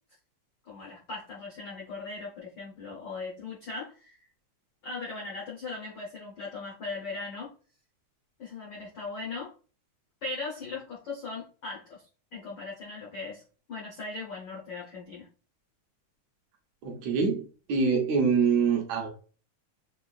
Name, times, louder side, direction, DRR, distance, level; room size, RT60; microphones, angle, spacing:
voice 1, 0.6-4.2 4.8-7.5 8.4-9.5 10.2-12.0 12.3-13.4 13.7-15.3, left 3 dB, 85° left, -5 dB, 0.9 m, -38 dB
voice 2, 16.8-19.1, right 5 dB, 70° right, 1 dB, 1.9 m, -25 dB
6.4 x 2.4 x 2.4 m, 0.38 s
omnidirectional pair, 3.6 m